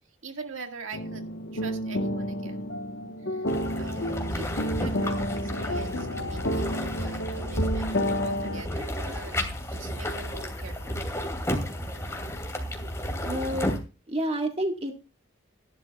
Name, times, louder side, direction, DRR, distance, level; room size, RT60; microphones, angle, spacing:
voice 1, 0.1-2.7 3.2-3.5 3.7-7.9 8.2-9.4 9.7-11.0, right 3 dB, 90° right, 4 dB, 1.9 m, -43 dB
sound 1, 0.9-8.6, equal, 70° left, 1.3 m, -30 dB
sound 2, 3.5-13.8, equal, 15° left, 2.5 m, -32 dB
voice 2, 13.2-13.7 14.1-15.0, right 1 dB, 30° right, 3 dB, 1.7 m, -29 dB
17.0 x 11.5 x 2.4 m, 0.31 s
head